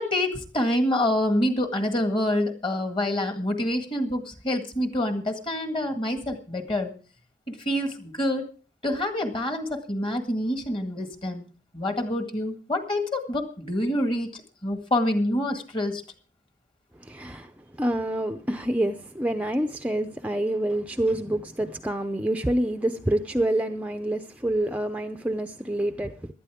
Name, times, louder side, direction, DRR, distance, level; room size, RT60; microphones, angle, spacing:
voice 1, 0.0-6.9 7.5-8.5 8.8-16.0, left 1 dB, 30° left, 1.8 m, -27 dB
voice 2, 17.0-26.3, right 1 dB, 10° right, 0.6 m, -27 dB
18.5 x 12.0 x 3.6 m
head